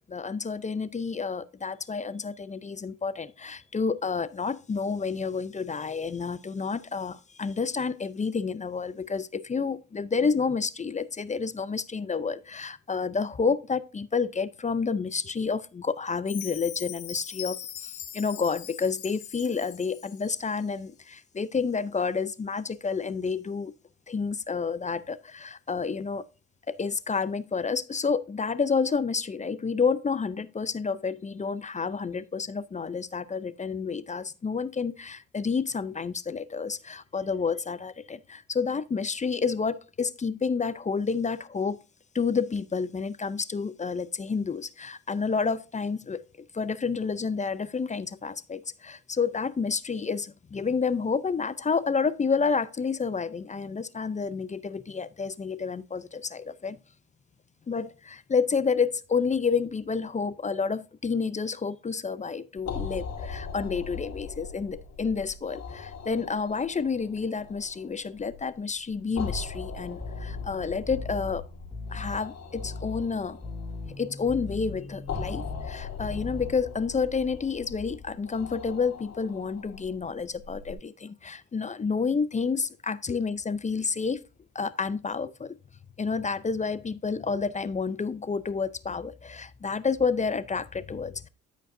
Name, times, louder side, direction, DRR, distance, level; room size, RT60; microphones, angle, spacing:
voice 1, 0.1-23.7 24.1-26.2 26.7-41.8 42.1-46.2 46.5-56.8 57.7-71.4 71.9-73.4 74.0-84.2 84.5-85.6 86.0-91.3, left 5 dB, 25° left, 0.5 m, -29 dB
Chime, 16.3-20.4, left 10 dB, 80° left, 1.5 m, -41 dB
sound 1, 62.6-80.7, left 5 dB, 60° left, 2.0 m, -40 dB
sound 2, 70.0-76.8, left 3 dB, 10° left, 3.2 m, -39 dB
13.0 x 5.2 x 2.6 m
cardioid pair, 90°, 30 cm